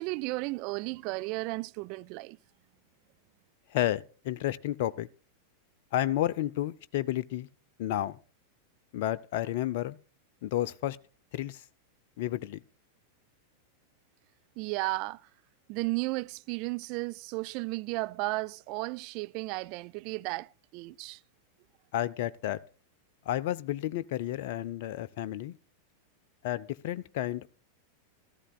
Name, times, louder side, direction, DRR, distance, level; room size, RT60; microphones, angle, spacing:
voice 1, 0.0-2.4 14.6-15.2 15.7-21.2, right 23 dB, 45° right, 0.4 m, -34 dB
voice 2, 3.7-5.1 5.9-7.5 7.8-8.2 8.9-10.0 10.4-11.0 11.3-11.6 12.2-12.6 21.9-22.6 23.3-25.5 26.4-27.5, left 13 dB, 50° left, 0.5 m, -31 dB
15.0 x 13.5 x 2.3 m
figure-of-eight pair, 90°, 0 cm